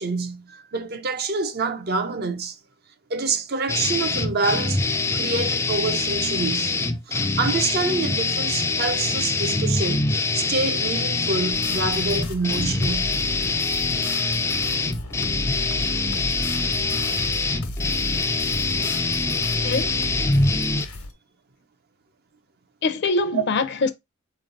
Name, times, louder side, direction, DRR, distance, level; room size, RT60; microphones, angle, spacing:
voice 1, 0.0-2.6 3.1-4.8 5.1-6.8 7.1-13.2 23.3-23.4, right 4 dB, 45° right, 0.6 m, -27 dB
sound 1, 3.7-20.9, left 3 dB, 10° left, 0.4 m, -24 dB
sound 2, 11.5-21.1, left 1 dB, 85° left, 1.1 m, -34 dB
voice 2, 19.6-20.0 22.8-23.9, left 3 dB, 50° left, 0.6 m, -23 dB
4.4 x 3.2 x 3.7 m
head